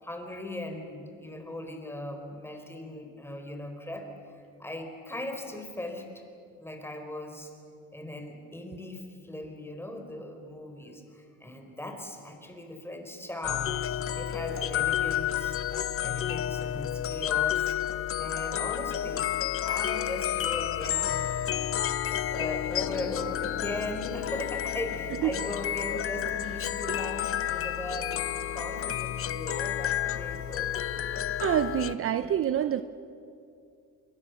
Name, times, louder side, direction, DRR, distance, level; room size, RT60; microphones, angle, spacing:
voice 1, 0.0-6.2 6.6-7.5 7.9-15.6 16.0-17.7 18.2-19.3 19.6-21.3 22.0-28.2 28.5-31.4, left 1 dB, 5° left, 5 dB, 4.4 m, -39 dB
sound 1, 13.4-32.0, left 11 dB, 45° left, 0.8 m, -30 dB
voice 2, 31.4-32.8, right 10 dB, 40° right, 12 dB, 0.8 m, -26 dB
27.5 x 22.5 x 7.1 m, 2.5 s
cardioid pair, 100°, 32 cm